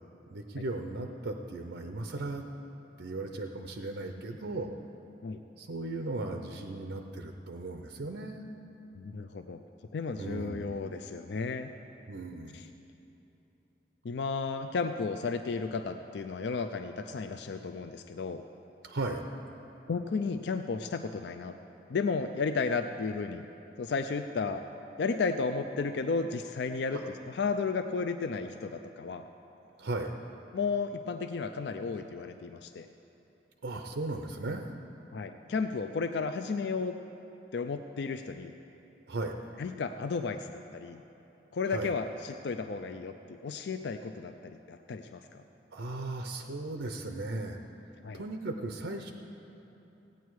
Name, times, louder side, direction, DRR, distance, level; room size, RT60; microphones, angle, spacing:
voice 1, 0.3-2.4 3.0-4.8 5.6-8.4 10.2-10.8 12.1-12.7 18.8-19.2 26.9-27.1 29.8-30.1 33.6-34.7 39.1-39.3 41.7-41.9 45.7-47.6 48.1-49.1, right 2 dB, 80° right, 5 dB, 0.7 m, -36 dB
voice 2, 8.9-9.6 9.9-11.7 12.5-12.7 14.0-18.4 19.9-21.5 21.9-23.5 23.8-24.7 25.0-29.2 30.5-32.9 35.1-37.0 37.5-38.5 39.6-41.0 41.5-45.4 48.0-48.2, left 4 dB, 70° left, 7 dB, 0.4 m, -33 dB
16.5 x 9.2 x 4.7 m, 3.0 s
head